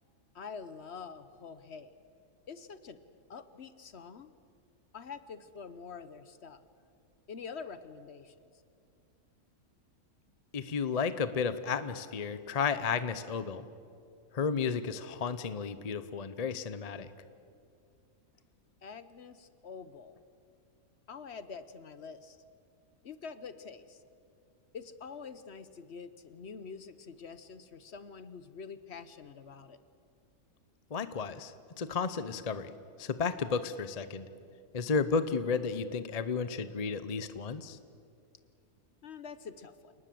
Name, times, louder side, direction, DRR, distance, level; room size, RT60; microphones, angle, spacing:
voice 1, 0.3-1.9 2.5-3.0 3.3-4.3 4.9-6.7 7.3-8.4 18.8-20.2 21.1-22.4 23.0-24.0 24.7-29.8 39.0-39.9, left 5 dB, 55° left, 13 dB, 1.1 m, -46 dB
voice 2, 10.5-13.7 14.3-17.1 30.9-32.7 33.0-34.3 34.7-37.8, left 5 dB, 35° left, 13 dB, 0.7 m, -33 dB
29.0 x 19.0 x 7.7 m, 2.4 s
omnidirectional pair, 1.5 m